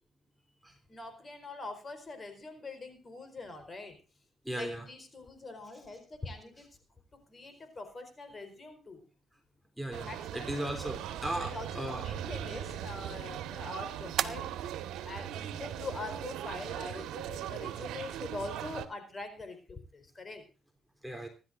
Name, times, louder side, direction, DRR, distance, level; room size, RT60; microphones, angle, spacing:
voice 1, 0.9-4.0 4.5-6.7 7.1-9.0 10.0-10.5 11.3-14.6 15.0-20.4, left 2 dB, 30° left, 8 dB, 4.4 m, -43 dB
voice 2, 4.4-4.8 9.8-12.0 21.0-21.3, right 1 dB, 5° right, 3 dB, 3.5 m, -37 dB
sound 1, 9.9-18.9, right 11 dB, 90° right, 1.5 m, -39 dB
sound 2, 10.7-17.6, right 9 dB, 65° right, 1.0 m, -43 dB
25.0 x 12.0 x 2.6 m, 0.33 s
cardioid pair, 90°, 0 cm